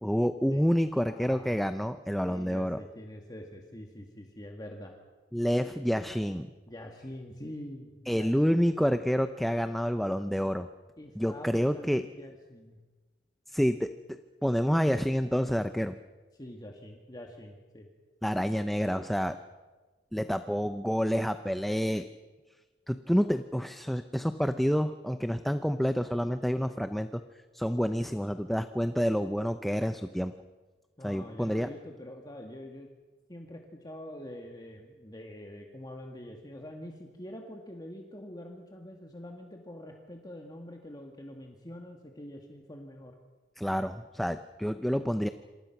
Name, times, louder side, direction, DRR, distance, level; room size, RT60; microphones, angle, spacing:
voice 1, 0.0-2.8 5.3-6.5 8.1-10.7 11.2-12.1 13.5-15.9 18.2-19.4 20.1-22.1 22.9-27.2 27.5-30.3 31.0-31.7 43.6-45.3, equal, ahead, 9 dB, 0.7 m, -28 dB
voice 2, 1.1-1.6 2.2-5.0 6.7-8.6 11.0-12.8 16.3-17.9 31.0-32.9 33.3-43.1, left 1 dB, 20° left, 2 dB, 2.0 m, -45 dB
27.5 x 27.0 x 6.1 m, 1.3 s
head